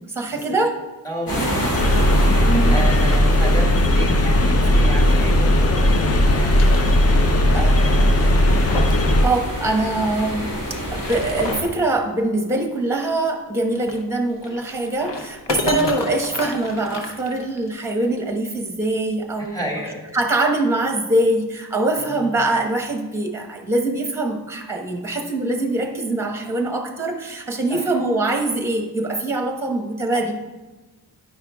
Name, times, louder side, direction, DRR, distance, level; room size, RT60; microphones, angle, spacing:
voice 1, 0.1-0.8 1.3-1.7 2.4-2.8 7.5-7.7 9.2-10.5 10.9-19.8 20.1-30.3, right 2 dB, 5° right, 3 dB, 0.9 m, -23 dB
voice 2, 1.0-7.0 7.4-8.6 15.6-16.0 19.4-20.1 22.0-22.4 27.7-27.9 30.1-30.2, equal, 10° left, -1 dB, 1.9 m, -33 dB
sound 1, 1.3-11.6, equal, 55° left, 2.2 m, -27 dB
sound 2, 1.7-9.2, left 1 dB, 35° left, 0.5 m, -17 dB
sound 3, 4.5-5.7 6.2-7.4 7.7-7.8 8.3-9.1 9.4-9.5 10.7-11.8 13.7-17.8, left 3 dB, 80° left, 0.9 m, -32 dB
9.4 x 5.7 x 2.3 m, 1.2 s
cardioid pair, 70°, 41 cm